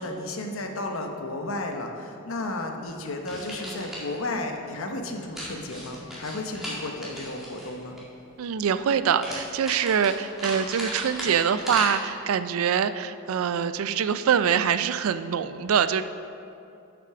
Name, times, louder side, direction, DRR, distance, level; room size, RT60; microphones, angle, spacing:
voice 1, 0.0-8.0, left 2 dB, 70° left, 3 dB, 0.9 m, -33 dB
sound 1, 3.3-4.1 5.3-8.0 9.2-11.8, equal, ahead, 1.9 m, -36 dB
voice 2, 8.4-16.0, right 7 dB, 75° right, 12 dB, 0.4 m, -24 dB
8.3 x 5.9 x 5.9 m, 2.6 s
head